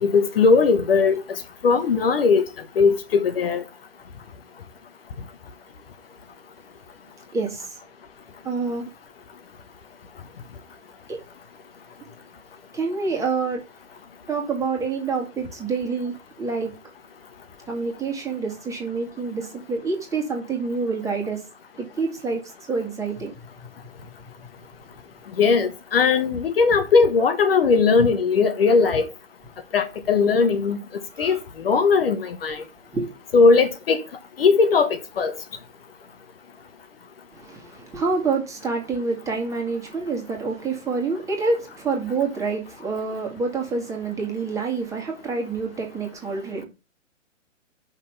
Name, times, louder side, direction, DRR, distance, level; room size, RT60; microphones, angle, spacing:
voice 1, 0.0-2.4 2.8-3.6 25.4-29.1 29.7-30.8 31.2-31.4 31.6-32.6 33.3-34.0 34.4-35.3, left 4 dB, 45° left, 1.2 m, -19 dB
voice 2, 7.3-7.8 8.4-8.9 11.1-11.2 12.7-13.6 14.3-16.7 17.7-21.4 21.8-22.4 22.7-23.3 31.1-31.4 32.9-33.1 37.3-46.6, right 4 dB, 10° right, 2.0 m, -27 dB
5.9 x 5.8 x 6.9 m
figure-of-eight pair, 130°, 39 cm